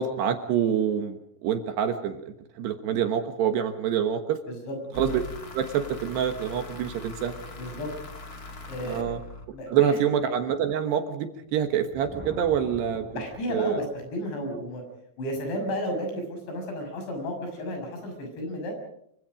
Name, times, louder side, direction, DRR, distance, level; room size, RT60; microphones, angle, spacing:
voice 1, 0.0-2.2 2.6-4.4 5.0-5.2 5.5-7.3 8.9-9.2 9.7-13.2 13.5-13.8, right 8 dB, 70° right, 7 dB, 3.1 m, -26 dB
voice 2, 4.5-4.8 7.5-7.9 8.7-9.2 9.5-10.0 13.1-14.8 15.2-18.7, equal, 65° left, 3 dB, 8.7 m, -33 dB
sound 1, 4.9-9.9, left 2 dB, 50° left, 1.1 m, -41 dB
Thunder, 11.6-14.1, right 1 dB, ahead, 6.4 m, -45 dB
26.5 x 25.0 x 5.2 m, 0.74 s
omnidirectional pair, 5.7 m